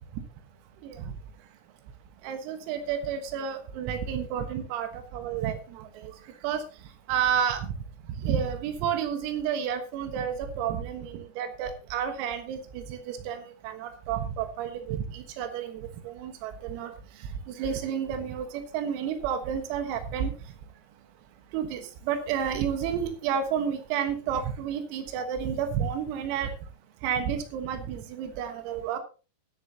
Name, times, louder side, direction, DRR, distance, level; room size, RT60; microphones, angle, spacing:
voice 1, 0.8-1.2 2.2-7.8 8.1-20.5 21.5-26.7 27.0-29.0, right 8 dB, 85° right, 7 dB, 4.1 m, -31 dB
21.0 x 8.5 x 2.9 m, 0.34 s
omnidirectional pair, 5.9 m